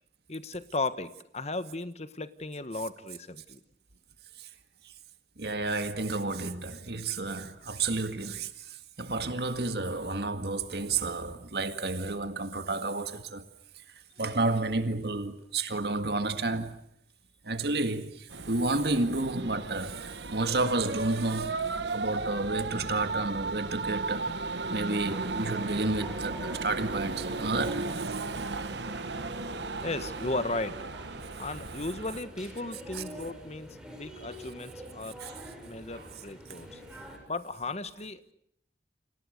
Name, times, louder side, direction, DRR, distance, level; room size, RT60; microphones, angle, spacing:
voice 1, 0.3-3.6 29.8-30.7 31.4-35.2 35.6-36.8 37.3-38.2, left 2 dB, 40° left, 1.4 m, -35 dB
voice 2, 5.4-13.5 14.2-16.8 17.4-21.6 21.9-24.3 24.7-28.2 28.6-28.7 32.9-33.0 35.2-35.4 35.9-36.1, right 3 dB, 65° right, 1.9 m, -31 dB
sound 1, 18.3-32.2, right 3 dB, 85° right, 1.4 m, -35 dB
sound 2, 25.1-37.2, equal, 5° right, 7.2 m, -46 dB
30.0 x 26.5 x 6.7 m
head